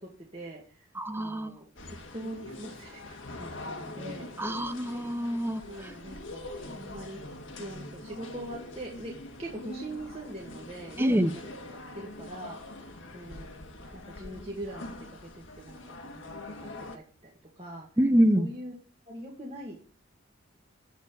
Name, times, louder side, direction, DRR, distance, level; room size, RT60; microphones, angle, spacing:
voice 1, 0.0-0.9 1.1-4.3 5.7-7.2 7.6-9.1 9.4-13.5 13.9-15.0 15.3-17.3 17.6-17.9 18.4-18.7 19.1-19.9, right 1 dB, 30° right, -3 dB, 2.1 m, -42 dB
voice 2, 1.0-1.5 4.4-5.6 11.0-11.3 18.0-18.5, equal, 10° right, 10 dB, 0.7 m, -25 dB
sound 1, 1.8-17.0, left 2 dB, 70° left, 1.7 m, -43 dB
13.0 x 4.4 x 8.2 m, 0.41 s
head